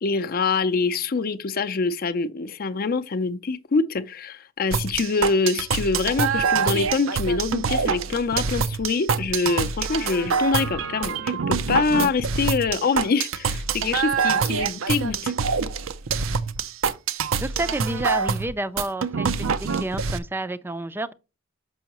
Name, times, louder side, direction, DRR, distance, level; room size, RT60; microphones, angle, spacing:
voice 1, 0.0-15.3, left 4 dB, 45° left, 0.5 m, -25 dB
sound 1, 4.7-20.2, right 6 dB, 80° right, 0.5 m, -25 dB
voice 2, 17.4-19.3 19.6-21.1, right 2 dB, 10° right, 0.4 m, -29 dB
6.2 x 5.6 x 2.9 m
head